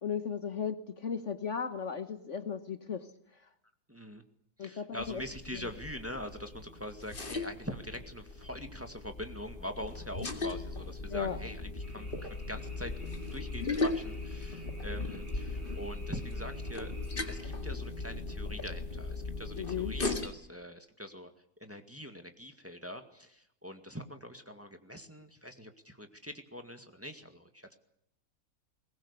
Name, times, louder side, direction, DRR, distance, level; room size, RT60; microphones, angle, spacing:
voice 1, 0.0-3.1 4.6-5.2 5.5-5.6 11.1-11.4 19.6-19.9, left 7 dB, 50° left, 10 dB, 1.4 m, -36 dB
voice 2, 3.9-4.2 4.6-12.9 13.3-16.9 17.3-21.3 21.6-27.8, equal, 10° right, 6 dB, 1.9 m, -43 dB
sound 1, 5.0-20.3, left 3 dB, 35° left, 2.3 m, -38 dB
sound 2, 11.8-17.4, right 1 dB, 45° right, 5.7 m, -56 dB
22.5 x 19.5 x 8.3 m, 0.74 s
omnidirectional pair, 1.6 m